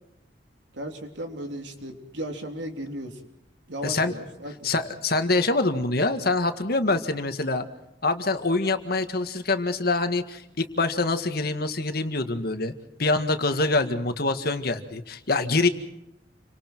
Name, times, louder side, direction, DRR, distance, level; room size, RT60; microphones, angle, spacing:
voice 1, 0.7-3.2 3.7-4.7, right 1 dB, 80° right, 4 dB, 3.6 m, -35 dB
voice 2, 3.8-4.1 4.6-7.7 8.0-12.7 13.0-15.7, left 3 dB, 55° left, 8 dB, 1.9 m, -25 dB
29.5 x 25.0 x 4.6 m, 0.87 s
head